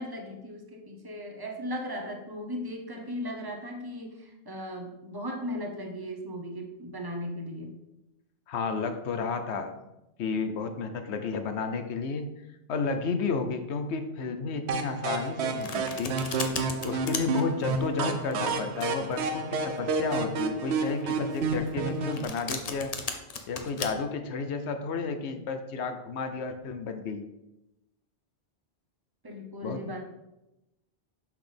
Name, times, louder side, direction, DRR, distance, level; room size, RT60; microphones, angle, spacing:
voice 1, 0.0-7.8 29.2-30.0, equal, 20° right, 1 dB, 0.9 m, -37 dB
voice 2, 8.5-9.8 10.2-12.2 12.7-16.2 16.8-22.9 23.5-27.2 29.6-30.0, left 4 dB, 80° left, 8 dB, 1.0 m, -32 dB
sound 1, 14.7-22.2, right 4 dB, 80° right, 0.9 m, -30 dB
Domestic sounds home sounds, 15.2-23.9, left 4 dB, 40° left, 0.7 m, -37 dB
6.0 x 6.0 x 3.4 m, 0.93 s
omnidirectional pair, 1.1 m